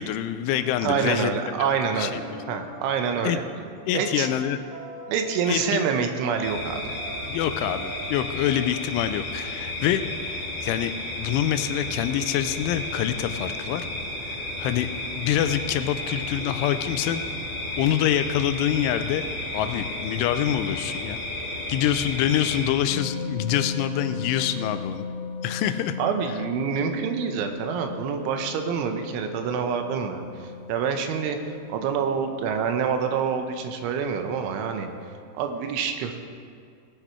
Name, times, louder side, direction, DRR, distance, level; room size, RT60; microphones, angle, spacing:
voice 1, 0.0-1.3 1.6-1.7 2.0-2.2 3.2-3.4 3.9-4.6 5.5-5.8 7.3-13.9 14.3-14.9 15.2-17.2 17.8-19.3 19.5-21.2 21.7-25.1 25.4-26.0, left 11 dB, 85° left, 10 dB, 3.0 m, -26 dB
sound 1, 0.6-8.7, right 2 dB, 65° right, 2.4 m, -42 dB
voice 2, 0.8-2.2 2.5-3.4 3.9-4.3 5.1-7.0 26.0-34.9 35.3-36.2, right 6 dB, 80° right, 6 dB, 3.2 m, -27 dB
sound 2, 6.4-22.7, left 1 dB, 45° left, 2.6 m, -33 dB
sound 3, 22.9-35.1, left 4 dB, 70° left, 3.0 m, -37 dB
19.0 x 8.0 x 4.5 m, 2.2 s
omnidirectional pair, 5.6 m